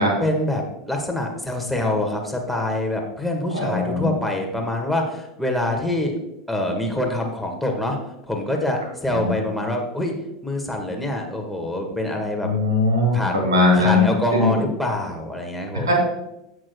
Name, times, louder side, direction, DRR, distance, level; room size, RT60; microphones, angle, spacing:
voice 1, 0.2-6.1 6.5-8.0 8.3-10.2 10.4-12.5 13.1-13.3 13.7-15.9, left 1 dB, ahead, 1 dB, 1.8 m, -25 dB
voice 2, 3.5-4.1 9.1-9.3 12.4-14.6 15.8-15.9, left 2 dB, 75° right, -1 dB, 3.3 m, -20 dB
15.5 x 6.3 x 2.3 m, 0.89 s
figure-of-eight pair, 80°, 2 cm